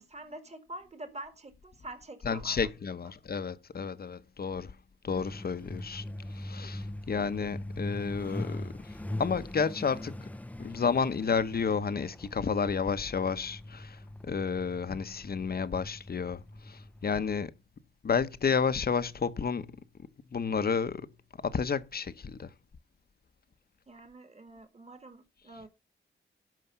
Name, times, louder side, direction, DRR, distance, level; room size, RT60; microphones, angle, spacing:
voice 1, 0.0-2.7 23.9-25.7, right 1 dB, 30° right, 1.9 m, -46 dB
voice 2, 2.2-4.8 5.0-6.0 6.3-10.2 10.6-17.5 18.0-19.8 20.3-21.1 21.4-22.5, left 5 dB, 50° left, 0.9 m, -31 dB
Truck, 5.1-17.4, left 1 dB, 5° left, 0.5 m, -42 dB
12.5 x 5.0 x 5.7 m
cardioid pair, 85°, 21 cm